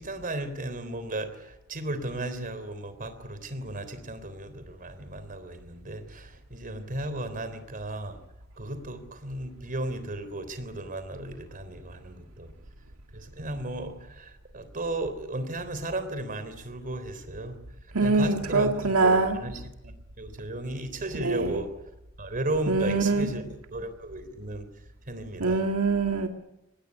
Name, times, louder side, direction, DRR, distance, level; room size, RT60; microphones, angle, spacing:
voice 1, 0.0-8.2 8.6-12.5 13.1-17.6 18.0-21.7 22.2-24.7 25.1-25.6, right 2 dB, 40° right, 3.6 m, -35 dB
voice 2, 17.9-19.4 21.2-21.6 22.7-23.3 25.4-26.3, right 3 dB, 80° right, 2.1 m, -24 dB
24.5 x 20.0 x 9.8 m
head